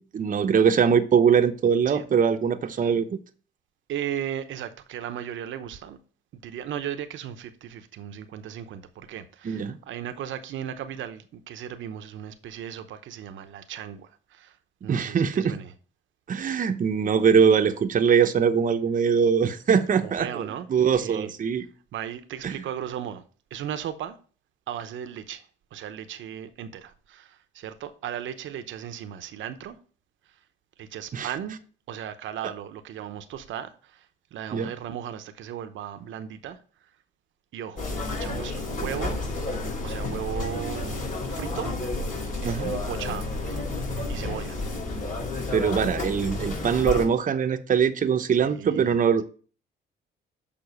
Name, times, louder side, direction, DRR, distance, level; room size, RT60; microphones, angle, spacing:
voice 1, 0.0-3.1 9.4-9.8 14.9-15.6 16.3-21.6 22.4-22.5 31.1-31.3 34.5-34.7 42.4-42.7 45.5-49.2, right 7 dB, 40° right, 0.8 m, -22 dB
voice 2, 3.9-6.0 6.4-14.6 14.8-15.7 19.9-21.3 21.9-23.2 23.5-24.2 24.7-25.4 25.7-29.8 30.8-31.6 31.9-34.1 34.3-36.6 37.5-39.2 39.8-41.0 41.3-41.8 42.4-43.7 44.1-44.6 48.4-48.9, right 10 dB, 75° right, 0.9 m, -36 dB
sound 1, 37.8-47.0, left 2 dB, 40° left, 3.9 m, -31 dB
6.9 x 5.4 x 5.4 m
cardioid pair, 90°, 20 cm